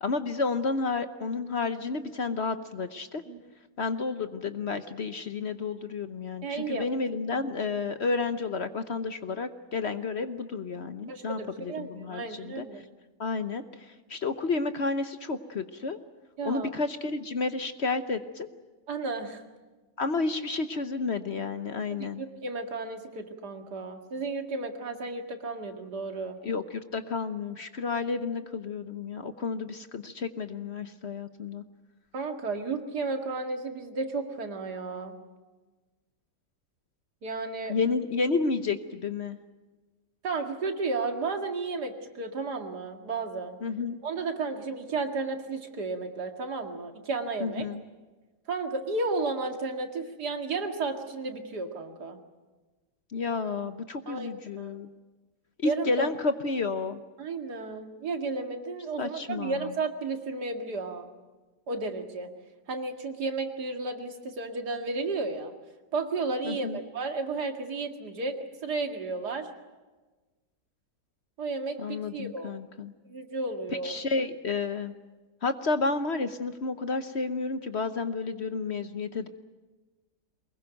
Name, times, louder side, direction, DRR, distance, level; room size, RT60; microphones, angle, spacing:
voice 1, 0.0-3.2 3.8-12.7 13.2-16.0 16.4-18.5 20.0-22.2 26.4-31.6 37.7-39.4 43.6-44.0 47.4-47.8 53.1-54.9 55.6-57.0 59.0-59.7 66.4-66.8 71.8-72.9 73.8-74.9 75.4-79.3, left 4 dB, 50° left, 10 dB, 1.0 m, -31 dB
voice 2, 6.4-6.9 11.1-12.9 16.4-16.7 18.9-19.4 21.9-22.1 22.4-26.4 32.1-35.2 37.2-37.8 40.2-43.6 44.0-47.6 48.5-52.2 54.1-54.3 54.6-54.8 55.6-56.1 57.2-61.1 61.7-62.3 62.7-65.5 65.9-69.5 71.4-72.6 73.1-74.0, right 3 dB, 75° right, 5 dB, 2.6 m, -33 dB
23.5 x 21.0 x 9.2 m, 1.2 s
omnidirectional pair, 1.7 m